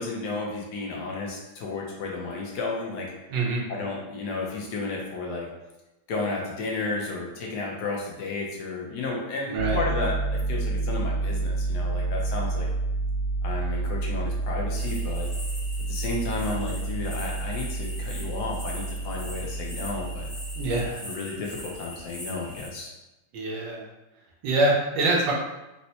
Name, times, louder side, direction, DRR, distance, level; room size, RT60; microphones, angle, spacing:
voice 1, 0.0-3.1 3.7-5.5 6.1-12.7 13.4-15.3 15.9-20.3 20.9-22.9, left 3 dB, 65° left, -2 dB, 1.1 m, -32 dB
voice 2, 3.3-3.6 9.5-9.8 20.5-20.9 23.3-23.9 24.4-25.3, right 2 dB, 75° right, -2 dB, 1.3 m, -24 dB
Piano, 9.6-20.9, right 3 dB, 90° left, 1.8 m, -29 dB
sound 1, 14.7-22.7, left 1 dB, 45° left, 0.4 m, -41 dB
4.1 x 2.1 x 2.7 m, 0.99 s
omnidirectional pair, 2.1 m